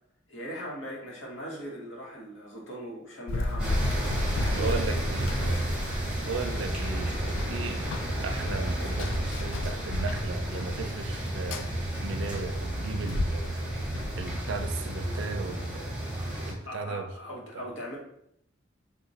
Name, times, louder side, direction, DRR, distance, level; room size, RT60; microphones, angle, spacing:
voice 1, 0.3-5.0 5.3-6.2 7.4-7.7 16.6-18.0, equal, 70° left, -3 dB, 1.0 m, -40 dB
Run, 3.3-14.7, left 1 dB, 90° left, 0.3 m, -34 dB
sound 1, 3.6-16.5, right 1 dB, 5° right, 0.8 m, -32 dB
voice 2, 4.5-5.4 6.3-13.6 14.1-16.0 16.3-17.1 17.5-17.7, right 4 dB, 70° right, 7 dB, 0.4 m, -36 dB
2.9 x 2.1 x 3.9 m, 0.74 s
head